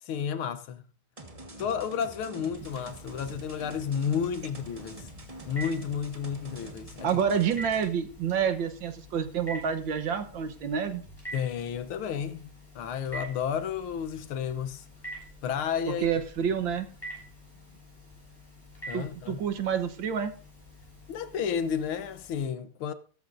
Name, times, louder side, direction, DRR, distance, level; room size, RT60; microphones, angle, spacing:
voice 1, 0.0-0.8 1.6-5.1 5.5-7.1 11.3-12.5 12.7-14.8 15.4-16.1 18.9-19.4 21.1-22.9, left 7 dB, 75° left, 1.7 m, -31 dB
sound 1, 1.2-7.9, right 1 dB, 20° right, 1.1 m, -46 dB
Telephone, 2.6-22.4, right 1 dB, 10° left, 7.3 m, -47 dB
voice 2, 7.0-11.0 15.9-16.9 18.9-20.3, right 7 dB, 65° right, 1.7 m, -28 dB
15.5 x 14.0 x 2.6 m
omnidirectional pair, 2.4 m